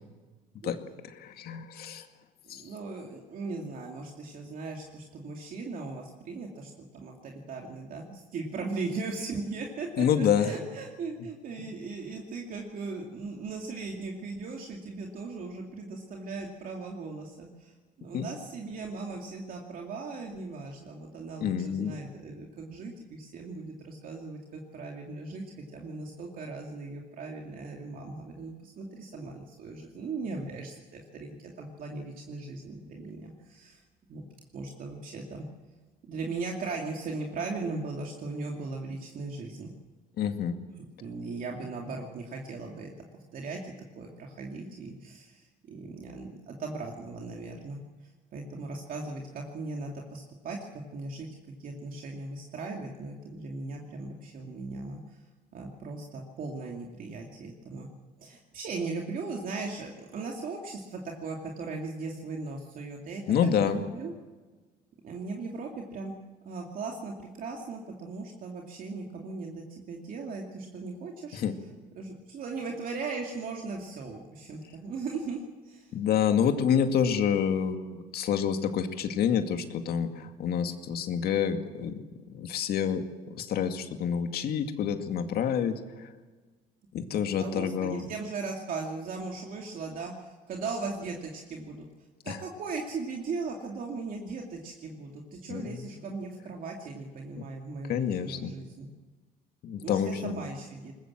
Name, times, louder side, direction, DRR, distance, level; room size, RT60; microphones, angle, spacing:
voice 1, 1.1-2.1 2.5-2.6 10.0-10.5 18.1-18.3 21.4-21.9 40.2-40.6 63.3-63.8 71.3-71.5 75.9-82.0 82.3-86.1 86.9-88.0 92.3-92.4 95.5-95.8 97.9-98.5 99.6-100.4, left 8 dB, 65° left, 6 dB, 2.2 m, -28 dB
voice 2, 2.5-33.8 34.1-34.2 34.5-35.5 36.1-39.7 40.8-42.9 43.3-47.8 48.3-51.3 51.6-55.2 55.5-57.9 58.2-63.3 63.6-64.1 65.0-66.1 66.4-71.4 72.0-75.9 87.1-91.8 92.2-98.9 99.8-100.9, right 3 dB, 55° right, 0 dB, 2.6 m, -38 dB
21.5 x 20.5 x 7.6 m, 1.3 s
cardioid pair, 110°, 17 cm